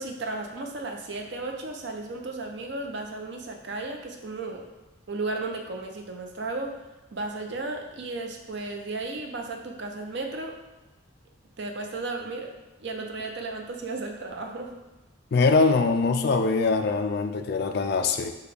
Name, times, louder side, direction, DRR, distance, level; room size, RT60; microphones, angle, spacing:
voice 1, 0.0-4.6 5.1-6.8 7.1-10.6 11.6-12.5 12.8-14.7, right 3 dB, 55° right, 3 dB, 0.5 m, -34 dB
voice 2, 15.3-18.3, left 4 dB, 50° left, 6 dB, 0.3 m, -23 dB
6.8 x 2.3 x 3.4 m, 1.1 s
head